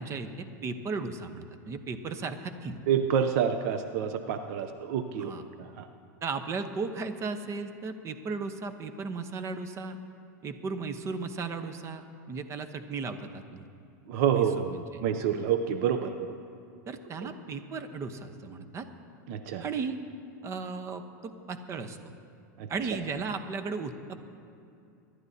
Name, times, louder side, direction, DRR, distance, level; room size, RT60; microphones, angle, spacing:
voice 1, 0.0-2.8 5.2-5.4 6.2-10.0 10.4-13.6 14.3-15.0 15.3-15.4 16.9-18.9 19.6-20.0 20.4-22.0 22.7-24.2, right 4 dB, 30° right, 8 dB, 0.9 m, -36 dB
voice 2, 2.9-5.3 5.6-5.9 14.1-14.7 15.0-16.3 19.3-19.6 22.6-22.7, right 8 dB, 60° right, 8 dB, 0.7 m, -28 dB
25.0 x 11.5 x 2.8 m, 2.6 s
supercardioid pair, 120°, 10 cm